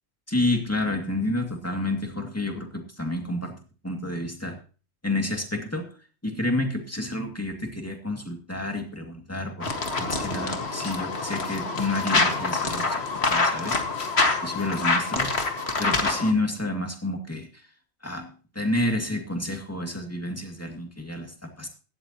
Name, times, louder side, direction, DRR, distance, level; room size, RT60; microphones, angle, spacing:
voice 1, 0.3-3.6 3.8-4.6 5.0-5.8 6.2-9.7 10.0-13.0 13.3-13.8 14.4-15.3 15.8-17.5 18.0-18.3 18.6-21.7, left 1 dB, 10° left, 3 dB, 2.3 m, -29 dB
sound 1, 9.6-16.3, left 3 dB, 55° left, 2.1 m, -26 dB
16.5 x 12.5 x 3.0 m, 0.37 s
omnidirectional pair, 1.4 m